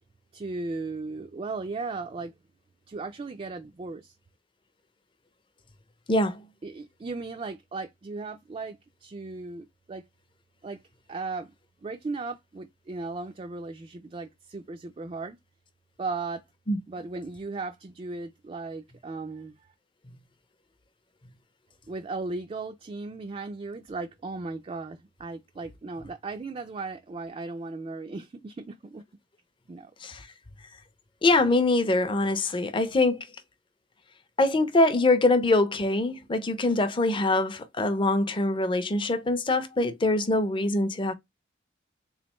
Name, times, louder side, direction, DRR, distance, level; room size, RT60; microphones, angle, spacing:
voice 1, 0.3-2.3 2.9-4.1 6.6-10.0 10.6-10.8 11.1-11.5 11.8-15.4 16.0-16.4 16.9-19.7 21.9-29.0 29.7-29.9, right 3 dB, 30° right, 0.3 m, -36 dB
voice 2, 6.1-6.5 16.7-16.8 30.0-30.3 31.2-33.3 34.4-41.1, left 2 dB, 25° left, 0.5 m, -24 dB
3.8 x 3.1 x 3.0 m
head